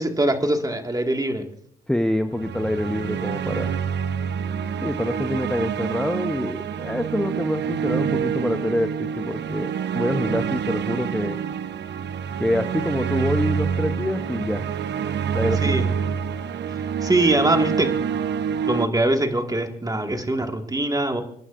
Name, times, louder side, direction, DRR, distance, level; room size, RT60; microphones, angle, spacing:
voice 1, 0.0-1.5 15.6-15.9 17.0-17.9 18.6-21.2, right 1 dB, 20° right, 5 dB, 2.0 m, -22 dB
voice 2, 1.9-3.7 4.8-11.4 12.4-14.7 15.3-15.8, left 1 dB, 5° left, 8 dB, 0.8 m, -26 dB
sound 1, 2.3-18.9, right 7 dB, 65° right, 0.9 m, -27 dB
29.5 x 11.0 x 2.6 m, 0.68 s
supercardioid pair, 50°, 20 cm